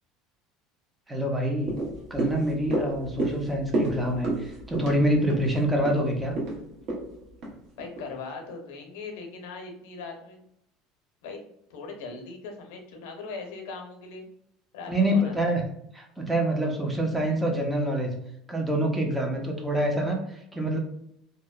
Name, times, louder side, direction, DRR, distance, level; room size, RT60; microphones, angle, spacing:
voice 1, 1.1-1.8 2.1-6.3 14.9-15.6 16.0-18.2 18.5-20.8, right 1 dB, 5° right, 1 dB, 0.5 m, -26 dB
sound 1, 1.6-8.1 8.5-8.6, right 2 dB, 50° right, 0.9 m, -31 dB
voice 2, 7.8-10.4 11.2-14.2 14.7-15.6, left 4 dB, 85° left, 3 dB, 0.6 m, -40 dB
2.7 x 2.0 x 2.3 m, 0.75 s
cardioid pair, 140°, 0 cm